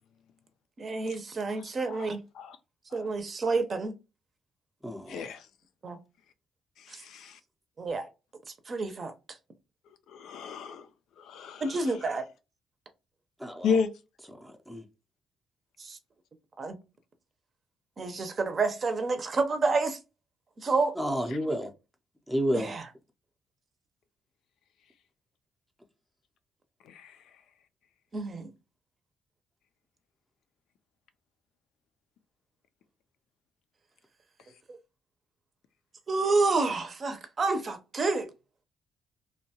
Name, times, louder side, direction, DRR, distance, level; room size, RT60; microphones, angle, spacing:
voice 1, 0.8-2.2 2.9-3.9 5.8-6.0 6.9-7.0 7.8-8.1 8.5-9.1 11.6-12.2 15.8-16.0 16.6-16.8 18.0-20.0 20.6-21.0 22.5-22.9 28.1-28.5 34.7-34.8 36.1-38.3, right 3 dB, 40° right, 0.6 m, -29 dB
voice 2, 1.9-2.6 2.9-3.1 5.1-5.5 6.8-7.4 10.1-10.9 11.2-11.8 13.6-13.9 26.9-27.2, left 6 dB, 80° left, 0.4 m, -33 dB
voice 3, 4.8-5.3 13.4-13.8 14.4-14.8 21.0-21.7 22.3-22.7, equal, ahead, 0.5 m, -31 dB
2.7 x 2.2 x 2.8 m
cardioid pair, 90°, 0 cm